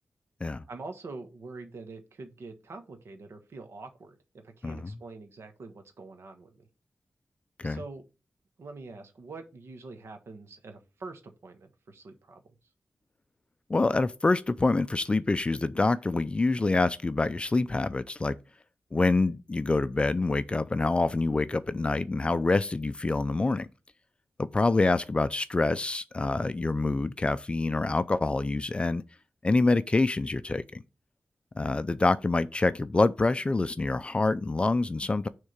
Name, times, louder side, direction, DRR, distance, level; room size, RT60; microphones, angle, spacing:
voice 1, 0.7-4.2 4.4-6.7 7.6-8.0 8.6-12.4, right 3 dB, 70° right, 1.3 m, -44 dB
voice 2, 4.6-4.9 7.6-7.8 13.7-18.4 18.9-23.7 24.4-29.0 29.4-30.8 31.6-35.3, left 3 dB, 25° left, 0.4 m, -26 dB
6.4 x 3.6 x 5.8 m
wide cardioid pair, 150°, 5 cm